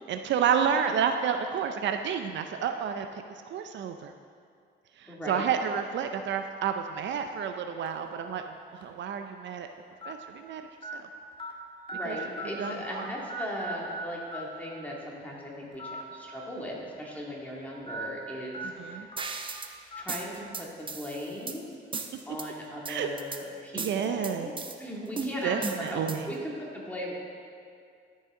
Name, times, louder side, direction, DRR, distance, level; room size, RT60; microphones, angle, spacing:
voice 1, 0.1-3.1 3.5-4.1 5.0-9.7 10.1-10.6 10.9-11.1 12.0-12.2 12.6-13.1 18.6-19.1 22.9-23.1 23.7-24.5 25.4-26.3, right 7 dB, 65° right, 6 dB, 0.5 m, -30 dB
voice 2, 5.1-5.5 11.9-19.1 20.0-21.6 22.3-24.5 24.8-27.1, equal, 10° left, -4 dB, 2.1 m, -38 dB
sound 1, 7.9-8.1 8.8-8.9 10.0-10.1 10.8-10.9 11.4-11.5 11.9-13.0 13.3-14.0 14.3-14.4 15.7-16.0 16.4-16.5 17.9-18.1 18.5-18.7 19.1-19.2 19.9-20.0, right 1 dB, 25° left, 1.5 m, -38 dB
sound 2, 19.2-19.7 20.1-21.6 21.9-22.5 22.9-23.4 23.8-24.8 25.2-26.4, right 4 dB, 25° right, 0.6 m, -36 dB
13.0 x 5.5 x 3.7 m, 2.2 s
cardioid pair, 90°, 20 cm